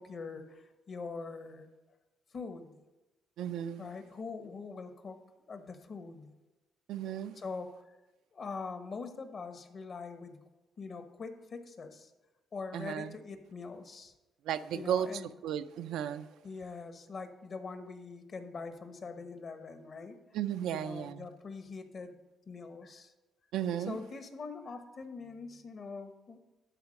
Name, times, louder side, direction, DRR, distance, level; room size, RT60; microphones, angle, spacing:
voice 1, 0.0-1.7 2.3-2.8 3.8-5.2 5.5-6.4 7.3-8.0 8.3-10.4 10.8-12.1 12.5-14.1 14.7-15.3 16.4-20.2 20.7-23.1 23.9-26.4, left 4 dB, 50° left, 8 dB, 1.1 m, -43 dB
voice 2, 3.4-3.9 6.9-7.3 12.7-13.2 14.5-15.1 15.4-16.3 20.3-21.3 23.5-24.0, right 10 dB, 85° right, 10 dB, 0.4 m, -34 dB
11.5 x 4.2 x 6.4 m, 1.0 s
cardioid pair, 90°, 0 cm